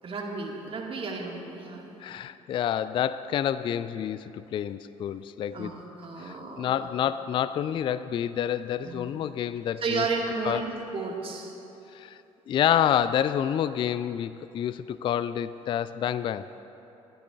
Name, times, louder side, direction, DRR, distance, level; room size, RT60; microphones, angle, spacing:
voice 1, 0.0-1.8 5.5-6.8 8.8-9.1 9.8-11.5, right 4 dB, 30° right, 0 dB, 2.0 m, -33 dB
voice 2, 2.0-5.7 6.2-10.0 10.4-10.6 11.9-12.2 12.5-16.6, left 10 dB, 30° left, 15 dB, 0.3 m, -28 dB
22.5 x 13.5 x 2.5 m, 3.0 s
figure-of-eight pair, 55°, 17 cm